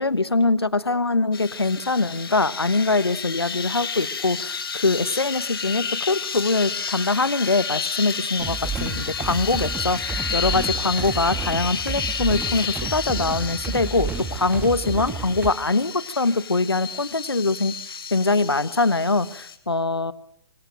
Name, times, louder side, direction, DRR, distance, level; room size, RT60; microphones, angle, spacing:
voice 1, 0.0-17.7 18.1-20.1, left 3 dB, 85° left, 18 dB, 1.3 m, -23 dB
sound 1, 1.3-19.6, left 6 dB, 65° left, 3.3 m, -31 dB
sound 2, 8.4-15.5, right 5 dB, 10° right, 1.8 m, -31 dB
25.5 x 25.0 x 6.4 m, 0.72 s
figure-of-eight pair, 120°, 13 cm